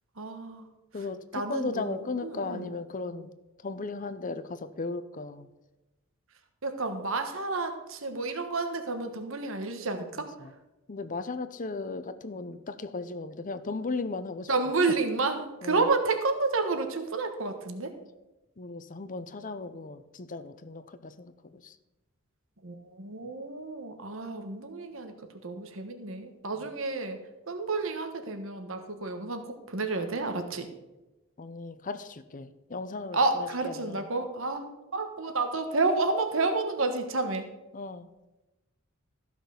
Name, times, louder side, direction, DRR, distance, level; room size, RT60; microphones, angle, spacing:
voice 1, 0.2-0.7 1.0-1.1 1.3-2.7 6.6-10.3 14.5-17.9 22.6-25.1 25.4-27.2 27.5-30.7 33.1-37.5, right 3 dB, 65° right, 6 dB, 1.3 m, -30 dB
voice 2, 0.9-3.3 3.6-5.5 10.2-10.5 10.9-14.5 15.6-15.8 18.6-21.7 25.6-25.7 31.4-34.0 37.7-38.1, left 3 dB, 40° left, 12 dB, 0.7 m, -36 dB
14.0 x 6.0 x 7.0 m, 1.0 s
head